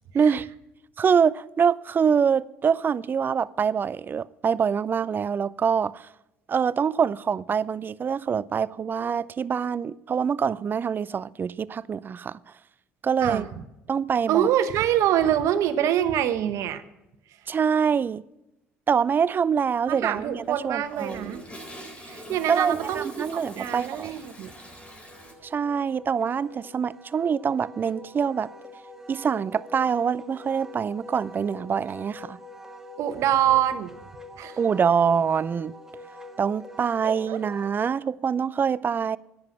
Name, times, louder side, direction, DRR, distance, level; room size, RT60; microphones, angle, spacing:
voice 1, 0.1-0.5 1.0-6.1 6.5-12.4 13.0-13.5 13.9-14.5 17.5-18.2 18.9-21.4 22.5-24.1 25.4-28.5 29.1-32.4 34.6-35.7 36.4-39.2, right 6 dB, 35° right, 0.4 m, -25 dB
voice 2, 14.3-16.8 19.9-21.4 22.0-24.5 33.0-33.9 34.4-34.6 37.0-37.4, right 11 dB, 65° right, 1.0 m, -25 dB
Toilet flush, 20.1-25.3, equal, 25° left, 4.1 m, -43 dB
Wind instrument woodwind instrument, 23.9-37.7, left 1 dB, 10° right, 1.4 m, -45 dB
10.5 x 8.8 x 7.5 m
hypercardioid pair, 60°, 6 cm